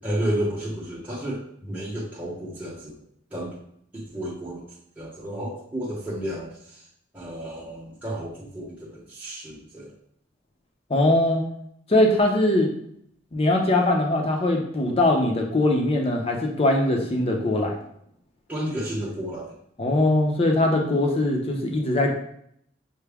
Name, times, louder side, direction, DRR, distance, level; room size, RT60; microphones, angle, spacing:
voice 1, 0.0-3.0 3.3-3.6 3.9-4.6 5.0-6.8 7.1-9.9 18.5-19.6, right 1 dB, 10° right, -7 dB, 0.8 m, -32 dB
voice 2, 10.9-11.4 11.9-12.7 13.3-17.8 19.8-22.1, left 1 dB, 30° left, 1 dB, 0.6 m, -21 dB
5.9 x 2.2 x 3.4 m, 0.69 s
head